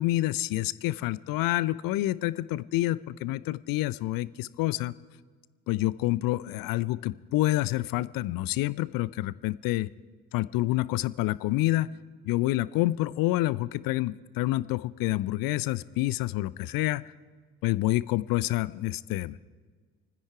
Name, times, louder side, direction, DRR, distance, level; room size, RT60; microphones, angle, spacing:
voice 1, 0.0-4.9 5.7-9.9 10.3-11.9 12.2-17.1 17.6-19.4, left 17 dB, 55° left, 19 dB, 0.6 m, -28 dB
28.5 x 10.0 x 4.7 m, 1.5 s
figure-of-eight pair, 45°, 40 cm